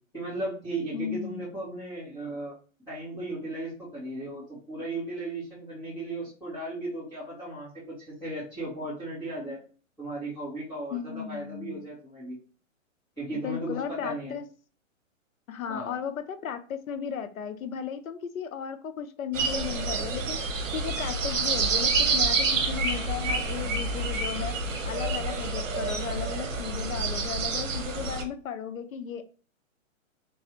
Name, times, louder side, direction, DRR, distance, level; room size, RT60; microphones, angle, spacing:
voice 1, 0.1-2.5 2.9-9.6 10.0-12.4 13.2-14.4 15.7-15.9, right 2 dB, 5° left, -15 dB, 2.0 m, -36 dB
voice 2, 0.9-1.4 10.9-11.8 13.4-14.4 15.5-20.4 20.7-29.2, left 8 dB, 85° left, 10 dB, 0.8 m, -35 dB
sound 1, 19.3-28.2, right 3 dB, 65° right, 1.0 m, -28 dB
3.4 x 3.1 x 3.0 m, 0.37 s
hypercardioid pair, 160°, 40 cm